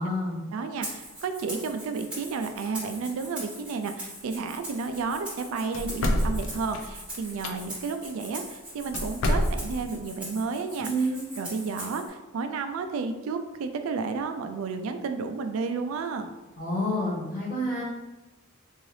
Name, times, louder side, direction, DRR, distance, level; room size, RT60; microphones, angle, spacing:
voice 1, 0.0-0.4 10.8-11.2 16.6-17.8, equal, 40° left, -6 dB, 1.3 m, -28 dB
voice 2, 0.5-10.9 11.4-16.3, right 4 dB, 80° right, 7 dB, 0.3 m, -32 dB
Rattle (instrument), 0.8-12.1, right 1 dB, 5° right, 1.0 m, -41 dB
sound 1, 5.7-7.5 8.9-9.9, left 1 dB, 70° left, 0.4 m, -27 dB
3.8 x 2.6 x 3.2 m, 1.1 s
head